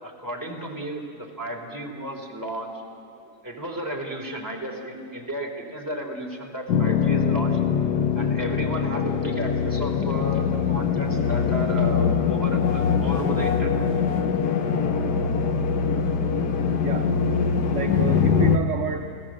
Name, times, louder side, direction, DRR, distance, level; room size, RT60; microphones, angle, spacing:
voice 1, 0.0-2.8 3.4-7.6 8.1-13.8, equal, 10° right, 0 dB, 3.2 m, -33 dB
sound 1, 6.7-18.6, left 6 dB, 85° left, 1.7 m, -23 dB
voice 2, 16.6-17.1 17.7-19.3, right 6 dB, 55° right, 4 dB, 1.2 m, -31 dB
28.0 x 17.0 x 7.6 m, 2.3 s
omnidirectional pair, 1.7 m